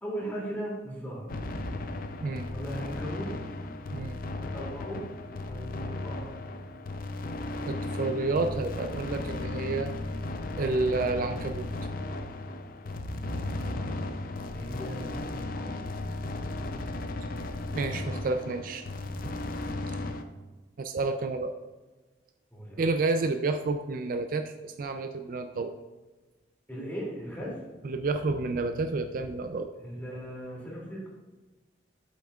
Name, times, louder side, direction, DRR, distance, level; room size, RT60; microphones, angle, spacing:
voice 1, 0.0-1.3 2.5-3.3 4.3-5.1 5.4-6.3 12.9-14.0 14.5-15.8 22.5-22.8 26.7-27.6 29.8-31.1, equal, 10° left, -5 dB, 2.5 m, -38 dB
sound 1, 1.3-20.2, left 2 dB, 50° left, 0.5 m, -35 dB
voice 2, 7.7-9.9 10.5-11.7 12.0-12.2 17.7-18.9 19.2-19.3 20.8-21.5 22.8-25.7 27.8-29.7, right 3 dB, 50° right, 7 dB, 0.4 m, -30 dB
8.4 x 7.9 x 2.4 m, 1.2 s
head